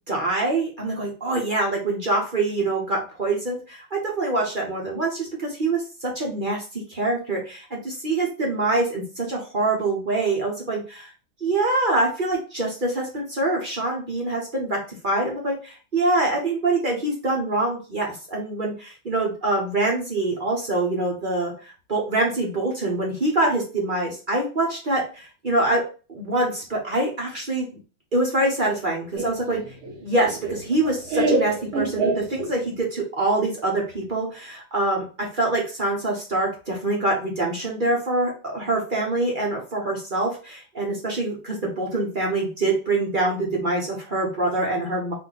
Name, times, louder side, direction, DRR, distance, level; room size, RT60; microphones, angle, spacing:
voice 1, 0.1-11.1 11.4-14.8 15.0-25.8 26.1-27.7 28.1-29.7 30.0-45.1, right 2 dB, 35° right, -1 dB, 0.8 m, -25 dB
Laughter, 29.2-32.8, right 2 dB, 85° right, 2.2 m, -26 dB
4.4 x 2.7 x 4.0 m, 0.34 s
omnidirectional pair, 2.2 m